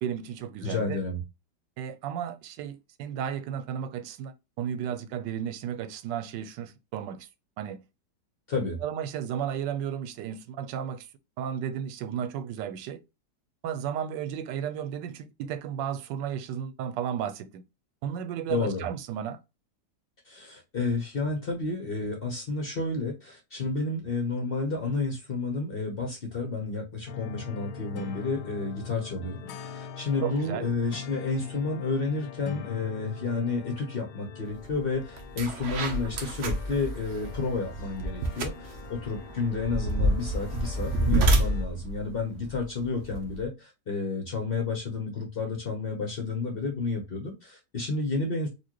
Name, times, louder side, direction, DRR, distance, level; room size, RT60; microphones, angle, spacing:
voice 1, 0.0-1.0 1.8-7.3 7.6-7.8 8.8-11.1 11.4-13.0 13.6-17.6 18.0-19.4 30.2-30.7, right 9 dB, 90° right, 1.2 m, -33 dB
voice 2, 0.6-1.2 8.5-8.8 18.5-18.9 20.3-48.5, left 3 dB, 45° left, 0.7 m, -31 dB
sound 1, 27.1-41.7, left 7 dB, 75° left, 1.2 m, -43 dB
sound 2, 34.6-34.8 35.2-43.4, right 1 dB, 60° right, 0.8 m, -29 dB
4.3 x 2.5 x 2.9 m
omnidirectional pair, 1.9 m